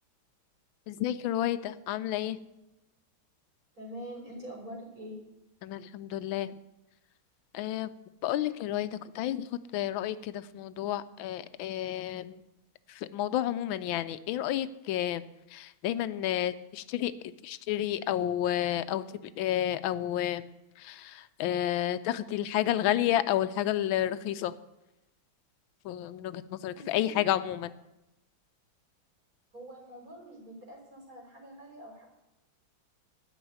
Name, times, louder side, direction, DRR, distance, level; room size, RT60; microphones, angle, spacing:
voice 1, 0.9-2.4 5.6-6.5 7.5-7.9 8.2-12.4 12.9-15.2 15.5-17.1 17.4-20.4 20.8-24.5 25.8-27.7, left 12 dB, 85° left, 13 dB, 1.4 m, -31 dB
voice 2, 3.7-5.2 26.7-27.2 29.5-32.0, equal, 45° right, -2 dB, 4.5 m, -45 dB
12.0 x 6.3 x 9.3 m, 0.94 s
omnidirectional pair, 2.1 m